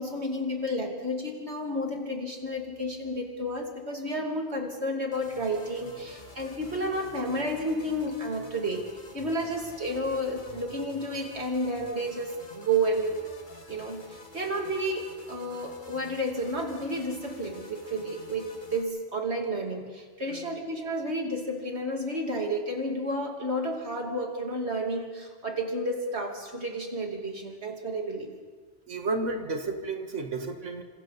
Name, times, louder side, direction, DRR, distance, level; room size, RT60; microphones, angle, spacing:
voice 1, 0.0-8.9 9.1-13.2 13.7-28.3, right 1 dB, 65° right, 1 dB, 3.1 m, -31 dB
sound 1, 5.1-18.8, left 2 dB, 40° left, 2.1 m, -49 dB
voice 2, 20.3-20.6 28.9-30.8, right 3 dB, 90° right, 4 dB, 2.1 m, -32 dB
28.0 x 26.0 x 4.2 m, 1.5 s
omnidirectional pair, 1.2 m